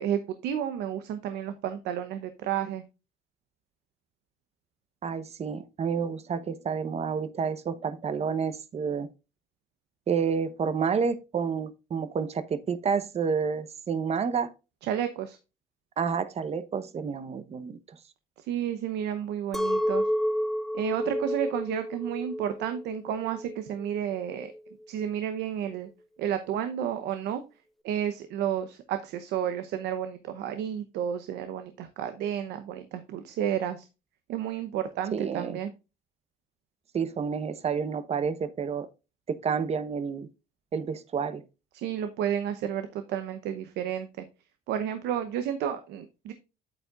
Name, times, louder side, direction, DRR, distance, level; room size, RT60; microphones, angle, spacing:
voice 1, 0.0-2.8 14.8-15.4 18.4-20.1 20.7-24.5 24.9-25.9 26.2-27.4 27.8-33.9 34.3-35.7 41.7-44.2 44.7-46.3, right 9 dB, 85° right, 0.9 m, -31 dB
voice 2, 5.0-9.1 10.1-14.5 16.0-17.8 35.1-35.6 36.9-38.9 39.3-40.3 40.7-41.4, right 6 dB, 40° right, 0.9 m, -29 dB
Chink clink, 19.5-24.7, equal, ahead, 0.5 m, -31 dB
8.6 x 8.1 x 2.4 m
cardioid pair, 110°, 17 cm